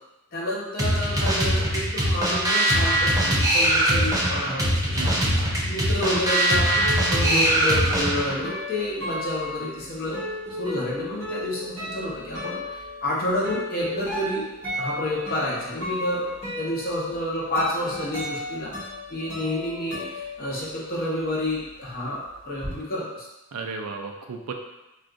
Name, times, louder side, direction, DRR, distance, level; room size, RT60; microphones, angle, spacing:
voice 1, 0.3-10.2 10.5-12.6 13.0-14.4 14.8-16.2 16.6-18.7 19.1-23.3, left 1 dB, 40° left, -5 dB, 0.8 m, -29 dB
sound 1, 0.8-8.4, right 1 dB, 15° right, 0.4 m, -22 dB
voice 2, 5.0-5.7 23.5-24.5, right 4 dB, 80° right, 3 dB, 0.4 m, -35 dB
sound 2, 6.4-21.0 21.3-22.7, left 1 dB, 10° left, 0.9 m, -35 dB
2.4 x 2.3 x 3.7 m, 0.97 s
head